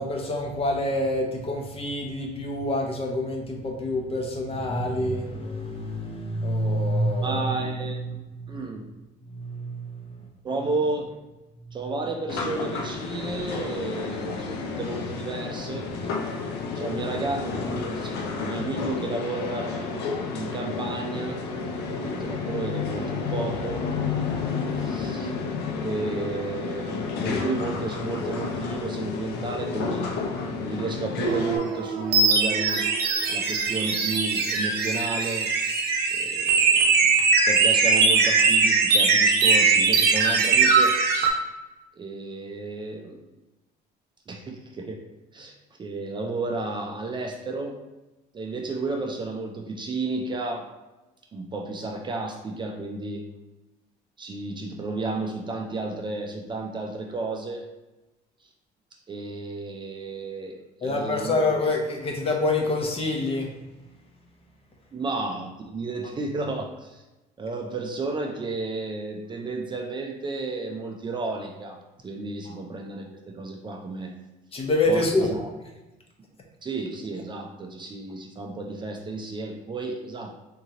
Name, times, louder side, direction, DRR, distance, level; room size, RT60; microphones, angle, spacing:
voice 1, 0.0-7.4 7.8-8.7 9.3-10.0 10.5-10.6 60.8-63.5 72.5-72.6 74.5-75.3, left 1 dB, 35° left, 1 dB, 0.8 m, -27 dB
voice 2, 7.2-8.2 8.5-8.9 10.4-11.2 11.7-15.9 16.7-20.1 20.3-21.4 22.0-23.9 24.7-25.3 25.8-30.1 30.6-32.9 33.3-35.5 36.1-37.0 37.5-41.4 42.0-43.2 44.3-45.1 45.3-47.8 48.3-50.7 51.3-53.2 54.2-57.7 59.1-61.4 64.9-67.0 67.4-74.1 74.9-75.5 76.6-80.3, right 3 dB, 30° right, 2 dB, 0.4 m, -32 dB
sound 1, 12.3-31.6, left 4 dB, 80° left, 0.5 m, -31 dB
sound 2, 31.2-41.3, right 4 dB, 70° right, 0.7 m, -21 dB
3.6 x 2.8 x 2.8 m, 1.0 s
cardioid pair, 110°, 17 cm